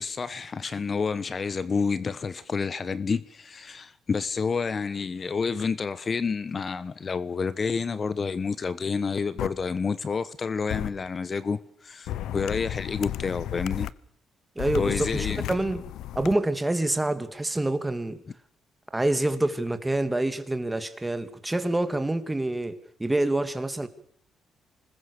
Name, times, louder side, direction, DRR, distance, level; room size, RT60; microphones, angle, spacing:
voice 1, 0.0-13.9 14.7-15.5, left 5 dB, 40° left, 1.2 m, -29 dB
sound 1, 9.4-9.5 10.7-10.9 12.1-13.9 14.6-16.3, left 12 dB, 85° left, 0.9 m, -33 dB
voice 2, 14.6-15.8 16.1-18.2 18.9-23.9, right 1 dB, 10° right, 2.7 m, -27 dB
26.0 x 20.5 x 6.8 m
cardioid pair, 90°, 0 cm